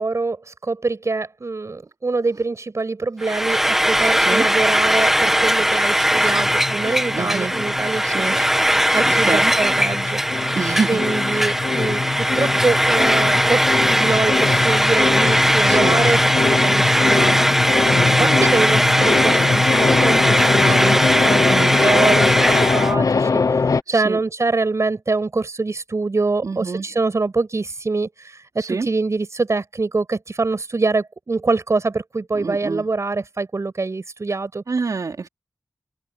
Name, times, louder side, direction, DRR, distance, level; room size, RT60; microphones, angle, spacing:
voice 1, 0.0-8.5 8.9-10.6 10.9-17.5 18.2-21.5 21.8-34.6, right 3 dB, 55° right, 6.4 m, -24 dB
Frying (food), 3.2-22.9, equal, 5° right, 1.5 m, -19 dB
sound 1, 6.1-8.7 8.9-23.8, left 4 dB, 75° left, 0.8 m, -22 dB
voice 2, 7.1-7.5 8.0-8.4 9.0-9.6 10.5-11.0 15.7-16.0 17.8-18.4 20.7-21.0 21.5-21.8 23.9-24.2 26.4-26.9 28.6-28.9 32.4-32.9 34.7-35.3, right 4 dB, 75° right, 4.7 m, -27 dB
open air
cardioid pair, 55°, 6 cm